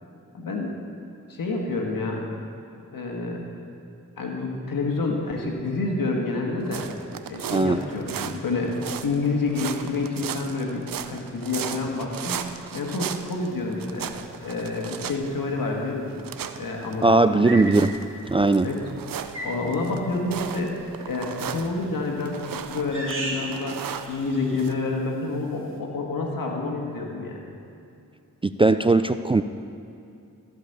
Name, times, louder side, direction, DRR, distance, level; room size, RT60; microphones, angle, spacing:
voice 1, 0.3-0.7 1.3-2.3 2.9-3.4 4.2-6.8 7.3-14.1 14.4-16.2 16.6-17.6 18.6-18.8 19.4-27.4, left 3 dB, 80° left, 0 dB, 1.7 m, -28 dB
sound 1, 6.6-24.7, right 8 dB, 75° right, 0.6 m, -37 dB
sound 2, 15.2-15.4 17.4-17.8 19.3-19.7 21.7-22.1 22.9-23.6 23.8-24.7, right 1 dB, 35° right, 2.0 m, -35 dB
voice 2, 17.0-17.9 18.3-18.7 28.4-29.4, right 2 dB, 15° right, 10 dB, 0.3 m, -19 dB
14.5 x 5.3 x 6.8 m, 2.6 s
cardioid pair, 40°, 34 cm